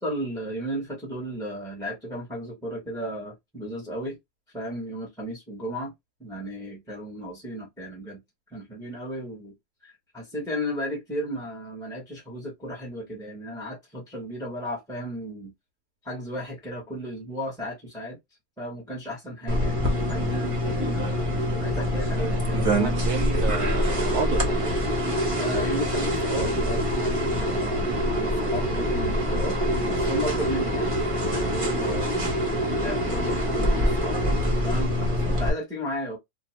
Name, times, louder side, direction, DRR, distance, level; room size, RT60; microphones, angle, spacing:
voice 1, 0.0-4.2 4.5-5.9 6.2-8.2 8.5-9.6 9.8-15.5 16.0-18.2 18.6-19.8 20.1-21.1 21.6-22.6 25.4-32.1 32.8-34.2 34.6-36.2, equal, 5° left, 0.8 m, -34 dB
sound 1, 19.5-35.5, equal, 30° right, 0.7 m, -25 dB
voice 2, 22.3-24.6 31.8-32.1, right 6 dB, 75° right, 1.0 m, -32 dB
2.7 x 2.2 x 3.1 m
omnidirectional pair, 1.7 m